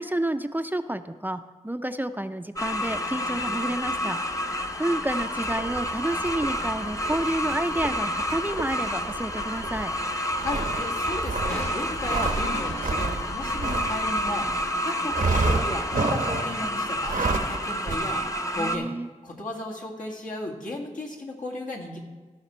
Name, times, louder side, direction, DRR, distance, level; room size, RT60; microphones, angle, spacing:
voice 1, 0.0-9.9 18.6-19.1, right 1 dB, 15° right, 9 dB, 0.4 m, -30 dB
sound 1, 2.6-18.8, left 1 dB, 25° left, 0.7 m, -29 dB
sound 2, 5.4-14.7 15.1-16.6 17.0-17.6 17.9-18.0, right 3 dB, 85° right, 0.9 m, -31 dB
voice 2, 10.3-18.9 19.2-22.0, left 2 dB, 80° left, -3 dB, 1.9 m, -35 dB
Crushing, 11.5-14.9 15.3-15.4, left 1 dB, 55° left, 1.4 m, -42 dB
15.5 x 5.8 x 4.3 m, 1.3 s
wide cardioid pair, 70°, 14 cm